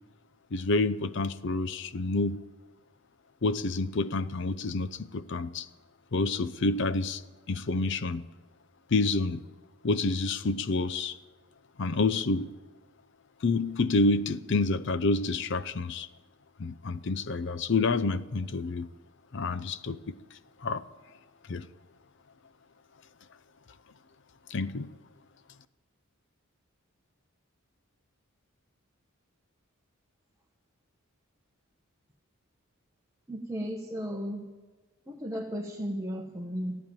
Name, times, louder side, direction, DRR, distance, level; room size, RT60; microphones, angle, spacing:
voice 1, 0.5-2.4 3.4-5.7 6.1-7.2 7.5-8.3 8.9-9.4 9.8-11.2 11.8-12.5 13.4-16.1 16.6-18.9 19.3-20.1 20.6-20.9 21.5-21.7 24.5-24.9, left 3 dB, 55° left, 0.6 m, -28 dB
voice 2, 33.3-34.5 35.1-36.8, equal, 15° right, 1.1 m, -35 dB
14.5 x 10.0 x 9.0 m
head